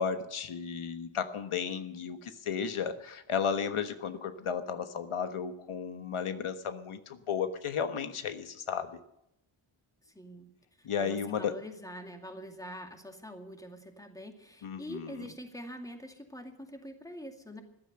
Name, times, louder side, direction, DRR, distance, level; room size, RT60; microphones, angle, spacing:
voice 1, 0.0-9.0 10.8-11.5 14.6-15.1, left 7 dB, 85° left, 9 dB, 1.4 m, -34 dB
voice 2, 10.1-10.5 10.8-17.6, equal, 5° left, 4 dB, 2.2 m, -45 dB
14.5 x 12.5 x 6.7 m, 0.83 s
wide cardioid pair, 130°, 49 cm